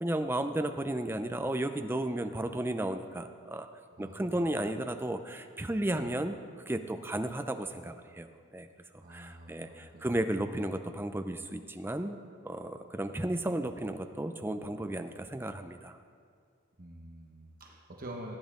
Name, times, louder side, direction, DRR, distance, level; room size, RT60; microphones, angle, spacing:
voice 1, 0.0-3.7 4.0-6.3 6.7-8.7 9.1-12.2 12.4-16.0, right 1 dB, 10° right, 7 dB, 0.5 m, -34 dB
voice 2, 4.0-4.5 5.9-6.1 9.0-10.1 16.8-18.4, right 1 dB, 45° right, 0 dB, 1.1 m, -46 dB
17.5 x 9.4 x 3.7 m, 2.2 s
head